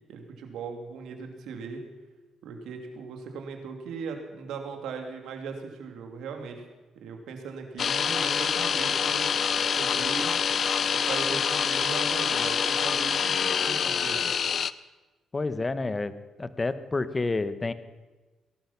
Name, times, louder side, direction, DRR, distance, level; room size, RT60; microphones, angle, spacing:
voice 1, 0.1-1.8 2.4-6.6 6.9-9.3 9.8-10.3 10.9-14.4, right 5 dB, 80° right, 4 dB, 2.6 m, -38 dB
sound 1, 7.8-14.7, left 7 dB, 55° left, 0.5 m, -26 dB
voice 2, 15.3-16.1 16.4-17.7, left 3 dB, 25° left, 13 dB, 1.0 m, -29 dB
19.0 x 12.0 x 5.9 m, 1.2 s
cardioid pair, 90°, 0 cm